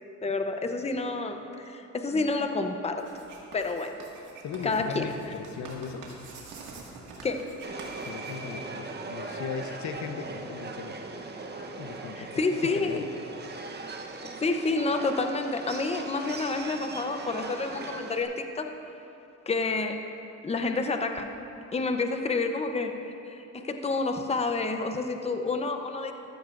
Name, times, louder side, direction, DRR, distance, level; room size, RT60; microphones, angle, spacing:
voice 1, 0.2-3.1 3.5-4.0 4.6-5.0 7.2-7.5 12.2-13.0 14.4-18.7 19.5-20.1 20.4-21.3 21.7-26.1, left 3 dB, 20° left, 6 dB, 0.8 m, -29 dB
Writing, 3.0-8.8, right 3 dB, 90° right, 2.0 m, -46 dB
voice 2, 4.4-6.1 8.0-10.9 11.8-13.1, left 6 dB, 70° left, 6 dB, 0.8 m, -38 dB
Subway metro underground, 7.6-18.2, right 3 dB, 35° right, 1.0 m, -39 dB
13.5 x 13.0 x 2.6 m, 2.8 s
cardioid pair, 90°, 30 cm